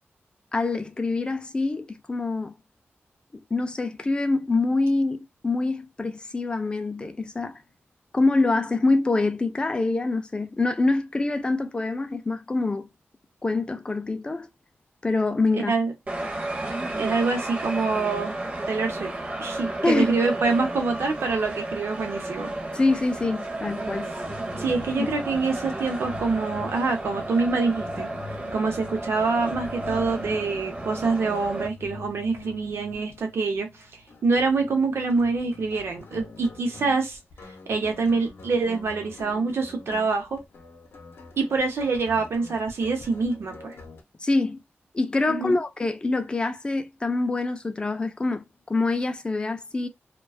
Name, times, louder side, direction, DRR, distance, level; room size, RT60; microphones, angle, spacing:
voice 1, 0.5-2.5 3.5-7.6 8.1-12.9 13.4-14.5 15.0-15.7 19.8-20.1 22.7-24.1 44.2-44.6 44.9-49.9, left 3 dB, 25° left, 0.3 m, -25 dB
voice 2, 15.5-15.9 17.0-18.3 18.7-19.1 19.4-22.5 24.6-28.1 28.5-33.9 34.2-37.2 37.7-40.4 41.4-43.7 45.3-45.6, right 4 dB, 80° right, 0.7 m, -25 dB
sound 1, 16.1-31.7, right 2 dB, 35° right, 0.6 m, -33 dB
sound 2, 24.2-44.0, left 3 dB, 65° left, 0.6 m, -44 dB
2.3 x 2.2 x 2.4 m
wide cardioid pair, 180°, 4 cm